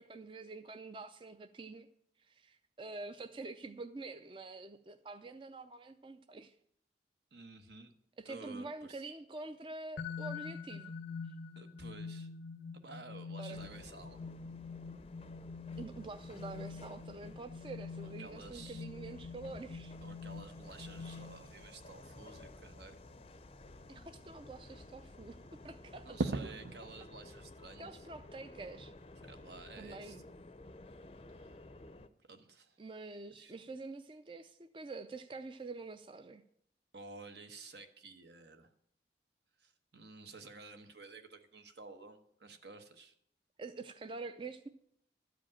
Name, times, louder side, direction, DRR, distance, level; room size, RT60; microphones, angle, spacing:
voice 1, 0.0-1.9 2.2-6.5 8.2-10.9 11.2-11.4 13.4-13.6 15.8-20.0 23.9-25.4 25.6-26.2 27.8-28.9 29.8-30.2 32.8-36.4 43.6-44.7, right 3 dB, 30° right, 9 dB, 0.4 m, -46 dB
voice 2, 7.3-7.9 8.2-9.0 11.6-12.3 12.7-14.2 18.0-18.8 20.0-23.0 26.0-28.1 29.2-30.3 31.3-31.5 32.2-32.8 33.3-33.5 36.9-38.7 39.6-43.1, right 3 dB, 70° right, 7 dB, 1.1 m, -52 dB
sound 1, 10.0-21.7, left 5 dB, 90° left, 0.6 m, -46 dB
sound 2, 13.5-32.1, left 2 dB, 30° left, 0.5 m, -54 dB
sound 3, 20.7-26.8, right 3 dB, 90° right, 0.6 m, -44 dB
12.5 x 5.1 x 8.7 m, 0.71 s
head